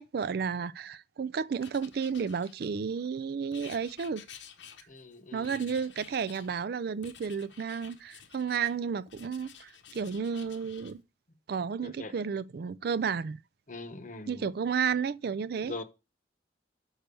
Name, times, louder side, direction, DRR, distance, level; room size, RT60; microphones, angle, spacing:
voice 1, 0.0-4.2 5.3-11.0 11.5-13.4 14.3-15.7, right 6 dB, 60° right, 0.4 m, -32 dB
Writing, 1.6-2.9 3.5-5.1 5.4-6.5 7.0-8.7 9.1-10.9, left 8 dB, 85° left, 1.0 m, -51 dB
voice 2, 4.9-5.7 11.8-12.1 13.7-14.5 15.6-15.8, left 3 dB, 45° left, 0.9 m, -42 dB
6.7 x 4.5 x 6.7 m
head